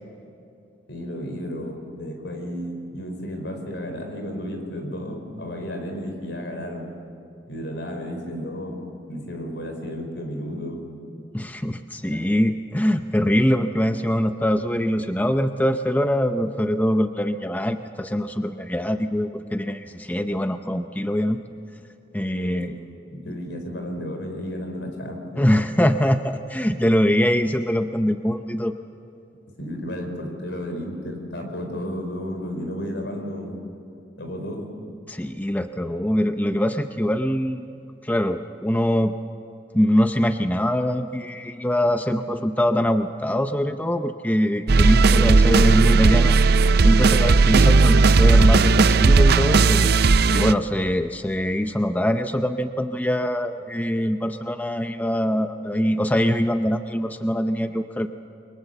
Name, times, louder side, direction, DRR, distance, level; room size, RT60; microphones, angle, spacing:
voice 1, 0.9-6.9 7.5-10.8 12.1-12.2 22.3-25.5 29.6-33.6 34.2-34.7, equal, 70° left, 4 dB, 5.0 m, -33 dB
voice 2, 11.3-21.4 22.1-22.7 23.3-23.4 25.4-28.7 35.1-37.6 38.0-39.1 39.7-46.4 46.8-49.9 50.3-58.1, equal, 10° left, 8 dB, 0.6 m, -23 dB
sound 1, 44.7-50.5, right 4 dB, 60° right, 0.5 m, -15 dB
29.5 x 23.0 x 7.0 m, 2.7 s
head